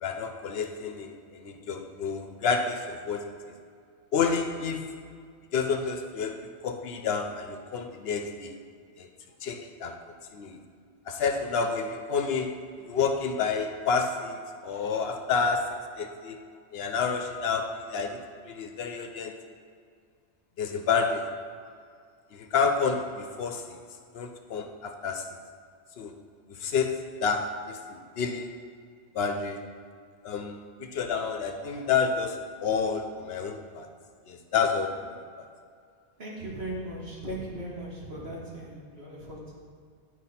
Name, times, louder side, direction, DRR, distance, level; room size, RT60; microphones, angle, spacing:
voice 1, 0.0-3.3 4.1-4.9 5.5-8.5 9.0-9.1 9.4-10.0 10.3-10.6 11.1-16.4 16.7-19.3 20.6-21.4 22.3-23.8 24.1-25.3 26.0-26.1 26.5-28.5 29.1-29.7 30.2-33.9 34.3-35.5 37.3-37.4, left 5 dB, 65° left, 5 dB, 0.8 m, -29 dB
voice 2, 36.2-39.6, right 1 dB, 60° right, -5 dB, 1.9 m, -38 dB
9.8 x 4.7 x 4.2 m, 2.2 s
omnidirectional pair, 1.2 m